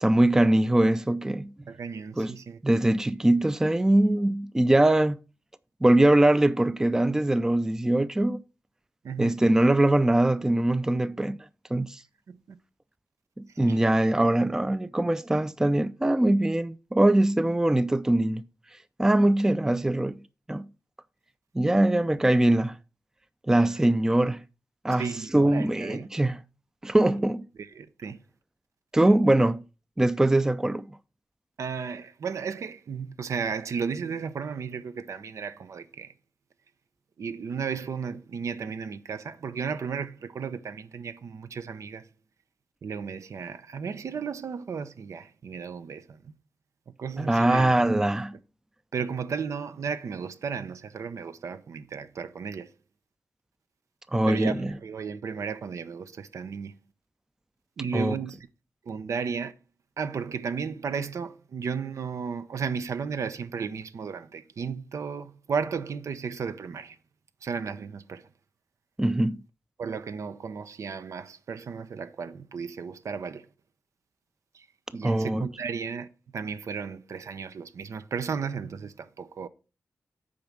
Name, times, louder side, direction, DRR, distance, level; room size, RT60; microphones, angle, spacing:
voice 1, 0.0-1.5 2.2-2.3 2.6-5.2 5.8-8.4 9.2-11.4 11.7-12.0 13.6-18.4 19.0-20.2 20.5-20.6 21.5-22.8 23.5-24.4 24.8-25.1 25.3-26.4 26.8-27.5 28.9-29.6 30.0-30.9 47.2-48.3 54.1-54.6 57.9-58.2 69.0-69.4 75.0-75.5, right 1 dB, 10° right, 0.4 m, -22 dB
voice 2, 1.7-2.6 9.0-9.4 12.3-12.6 13.7-13.8 25.0-26.1 27.6-28.2 31.6-36.1 37.2-42.1 42.8-46.3 46.9-47.9 48.9-52.7 54.2-56.8 57.8-58.5 58.8-59.5 60.0-67.0 67.4-68.3 69.8-73.5 74.5-74.7 74.9-76.1 76.3-79.5, right 6 dB, 75° right, 0.7 m, -34 dB
8.6 x 5.2 x 6.0 m
wide cardioid pair, 115°, 5 cm